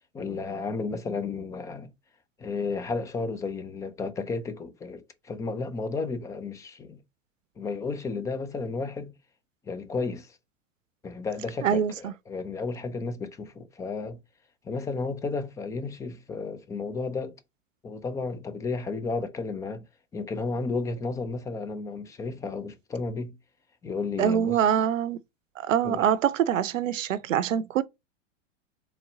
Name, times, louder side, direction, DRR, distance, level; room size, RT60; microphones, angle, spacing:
voice 1, 0.1-1.9 2.4-7.0 7.6-9.1 9.7-10.4 11.0-14.2 14.6-17.4 17.8-19.8 20.1-23.4 23.8-24.6 25.8-26.1, left 4 dB, 10° left, 0.3 m, -33 dB
voice 2, 11.6-12.1 24.2-25.2 25.6-27.8, right 9 dB, 80° right, 0.6 m, -24 dB
4.1 x 3.1 x 3.8 m
hypercardioid pair, 100°, 38 cm